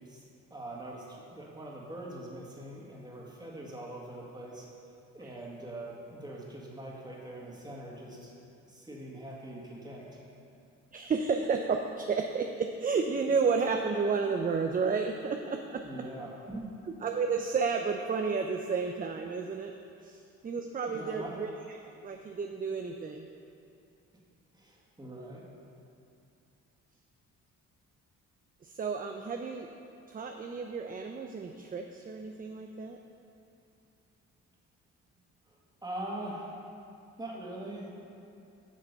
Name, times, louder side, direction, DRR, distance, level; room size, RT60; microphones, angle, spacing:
voice 1, 0.0-4.7 5.1-8.3 8.7-10.2 15.8-16.8 20.9-21.3 24.5-25.5 35.5-35.6 35.8-36.6 37.2-38.0, right 1 dB, 15° right, -3 dB, 2.0 m, -42 dB
voice 2, 10.9-15.8 17.0-19.7 20.0-21.5 22.0-23.3 28.6-29.7 30.1-33.0, right 5 dB, 30° right, 4 dB, 0.5 m, -31 dB
8.2 x 6.5 x 5.5 m, 2.6 s
cardioid pair, 90°, 30 cm